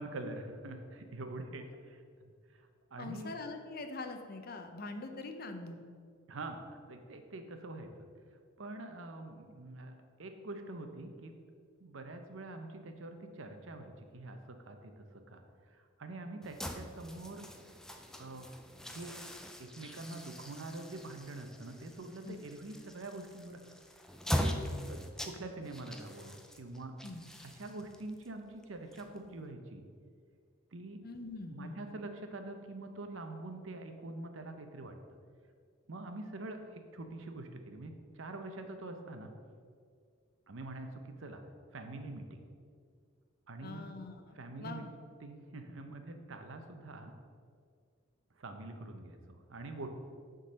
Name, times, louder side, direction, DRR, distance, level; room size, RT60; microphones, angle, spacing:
voice 1, 0.0-2.3 2.6-3.3 6.3-8.1 8.6-9.9 10.2-11.4 11.8-15.4 15.7-17.4 18.2-18.5 18.8-19.2 19.6-23.6 24.3-24.6 24.9-26.9 27.4-29.8 30.7-31.0 31.5-35.0 35.9-39.3 40.5-41.4 41.7-42.4 43.5-43.8 44.4-44.8 45.2-47.1 48.4-49.9, right 2 dB, 75° right, 6 dB, 0.7 m, -45 dB
voice 2, 3.0-5.8 22.2-22.4 27.0-27.2 31.0-31.8 43.6-44.9, left 3 dB, 50° left, 6 dB, 0.6 m, -44 dB
sound 1, 16.4-29.5, equal, 5° left, 0.4 m, -41 dB
6.7 x 3.9 x 6.3 m, 2.1 s
head